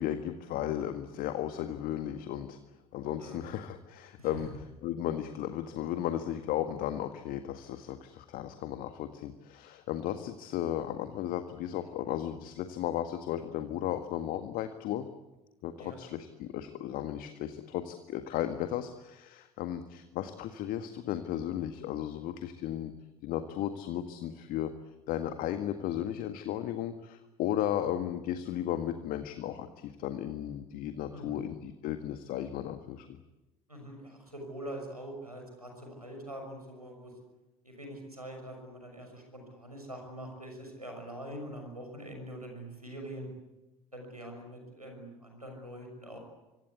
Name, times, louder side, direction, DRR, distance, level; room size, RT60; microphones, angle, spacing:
voice 1, 0.0-2.6 2.9-4.5 4.8-15.1 15.6-22.9 23.2-24.7 25.1-33.1, left 11 dB, 50° left, 8 dB, 1.8 m, -35 dB
voice 2, 3.2-3.6 4.2-4.5 15.8-16.0 31.1-31.4 33.7-37.1 37.6-43.3 43.9-46.2, right 1 dB, 90° right, 3 dB, 6.2 m, -44 dB
27.0 x 24.5 x 8.3 m, 1.0 s
figure-of-eight pair, 65°, 19 cm